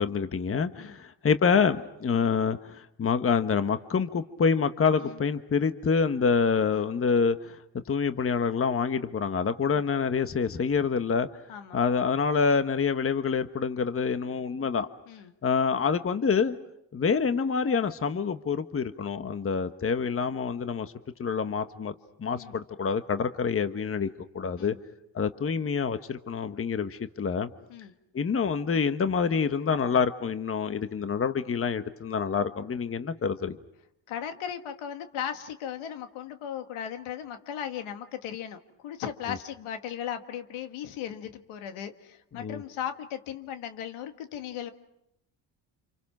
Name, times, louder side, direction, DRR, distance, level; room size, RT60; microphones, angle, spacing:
voice 1, 0.0-11.3 11.7-14.9 15.4-16.6 16.9-20.9 21.2-21.9 22.2-24.7 25.1-27.5 28.1-33.6 39.3-39.4 42.3-42.6, left 5 dB, 25° left, 10 dB, 1.2 m, -27 dB
voice 2, 34.1-44.7, left 9 dB, 80° left, 7 dB, 2.1 m, -37 dB
29.5 x 27.5 x 6.0 m, 0.83 s
cardioid pair, 95°, 49 cm